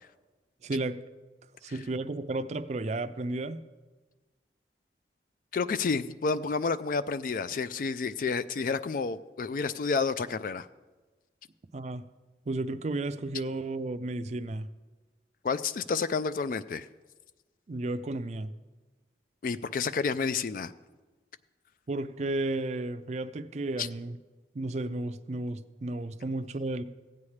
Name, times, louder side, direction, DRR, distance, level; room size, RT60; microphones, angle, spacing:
voice 1, 0.6-1.0 1.6-3.6 11.7-12.0 12.5-14.7 17.7-18.5 21.9-24.2 24.5-26.8, right 2 dB, 40° right, 0.4 m, -33 dB
voice 2, 5.5-10.7 15.4-16.9 19.4-20.7 23.8-23.9, left 4 dB, 50° left, 0.3 m, -30 dB
15.5 x 8.5 x 3.2 m
head